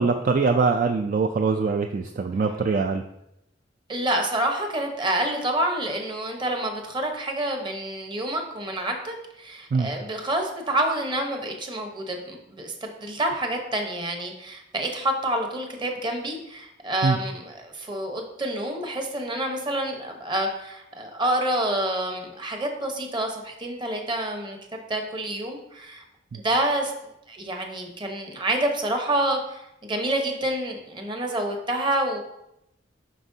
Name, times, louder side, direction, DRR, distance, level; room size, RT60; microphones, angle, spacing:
voice 1, 0.0-3.0 9.7-9.9 17.0-17.2 26.3-26.4, right 4 dB, 45° right, 5 dB, 0.3 m, -23 dB
voice 2, 3.9-26.0 26.3-26.9 27.3-32.2, right 1 dB, 25° right, 3 dB, 1.0 m, -28 dB
7.5 x 5.9 x 2.7 m, 0.84 s
head